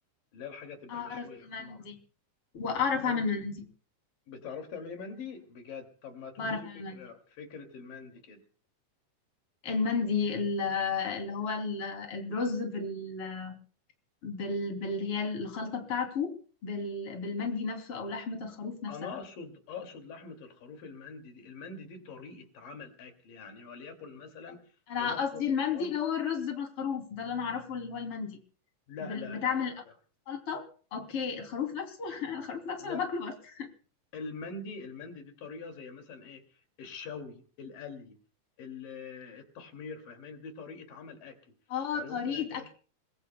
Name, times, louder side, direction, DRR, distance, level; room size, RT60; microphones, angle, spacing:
voice 1, 0.3-1.8 2.9-3.3 4.3-8.4 18.9-24.6 24.9-25.4 25.7-26.0 28.9-29.9 32.8-33.1 34.1-38.2 38.6-41.5 41.9-42.7, left 5 dB, 85° left, 5 dB, 4.1 m, -44 dB
voice 2, 0.9-2.0 2.5-3.7 6.4-7.0 9.6-13.5 14.2-16.4 16.6-19.2 24.9-28.4 29.0-29.7 30.3-30.6 30.9-33.7 41.7-42.7, left 5 dB, 45° left, 4 dB, 3.7 m, -33 dB
29.0 x 21.0 x 2.2 m, 0.40 s
omnidirectional pair, 3.8 m